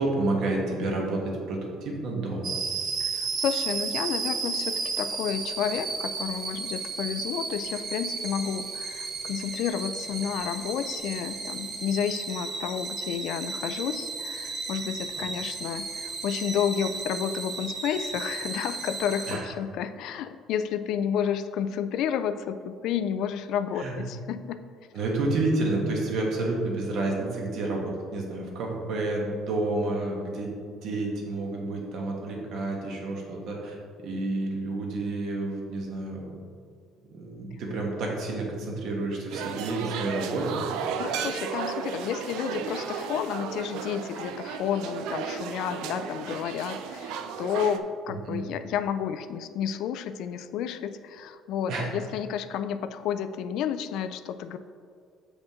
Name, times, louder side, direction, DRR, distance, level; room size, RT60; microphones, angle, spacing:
voice 1, 0.0-2.5 19.3-19.4 23.7-23.9 24.9-30.6 30.8-36.2 37.1-40.6 48.1-48.4 51.7-51.9, right 2 dB, 55° right, -1 dB, 1.4 m, -30 dB
sound 1, 2.4-19.4, right 4 dB, 35° right, 0.7 m, -34 dB
voice 2, 3.0-24.6 41.0-54.6, left 8 dB, 60° left, 11 dB, 0.3 m, -31 dB
sound 2, 39.3-47.8, right 7 dB, 80° right, 0.4 m, -34 dB
7.3 x 5.0 x 3.7 m, 2.2 s
cardioid pair, 160°, 0 cm